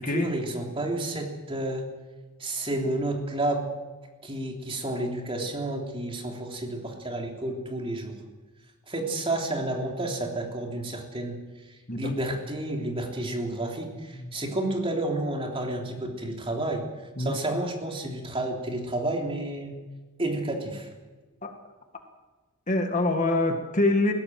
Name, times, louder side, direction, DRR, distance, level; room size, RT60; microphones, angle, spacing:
voice 1, 0.0-1.8 2.4-3.6 4.2-8.2 8.9-11.4 12.0-16.8 17.2-19.8 20.2-20.9, right 1 dB, 25° right, 1 dB, 3.3 m, -30 dB
voice 2, 22.7-24.1, left 2 dB, 35° left, 4 dB, 1.9 m, -24 dB
21.0 x 17.0 x 7.7 m, 1.2 s
head